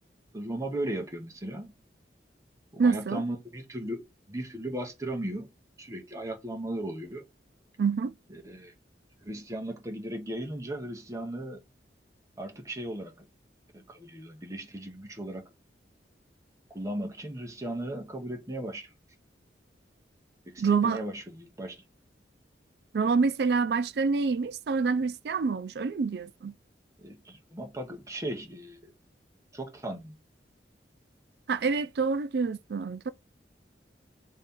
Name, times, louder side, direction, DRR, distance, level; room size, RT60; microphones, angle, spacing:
voice 1, 0.3-1.7 2.7-5.5 5.8-7.2 8.3-8.7 9.2-11.6 12.4-13.3 13.7-15.4 16.7-18.9 20.5-21.8 27.0-28.9 29.5-30.2, right 1 dB, 20° right, 0.8 m, -37 dB
voice 2, 2.8-3.2 7.8-8.1 20.6-21.0 22.9-26.5 31.5-33.1, right 5 dB, 65° right, 0.4 m, -27 dB
3.2 x 2.7 x 3.6 m
head